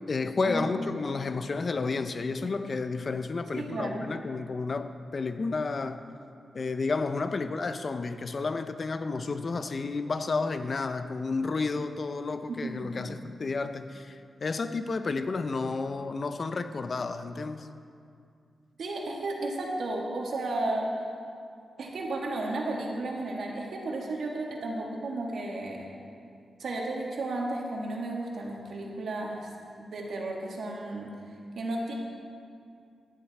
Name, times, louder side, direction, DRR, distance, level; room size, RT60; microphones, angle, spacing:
voice 1, 0.1-6.0 6.5-17.7, left 4 dB, 40° left, 9 dB, 0.6 m, -31 dB
voice 2, 3.6-4.1 12.5-13.2 18.8-20.9 21.8-25.9 26.6-29.5 29.8-31.1 31.6-31.9, right 2 dB, 70° right, -1 dB, 2.0 m, -33 dB
15.0 x 11.0 x 4.3 m, 2.4 s
wide cardioid pair, 130°, 0 cm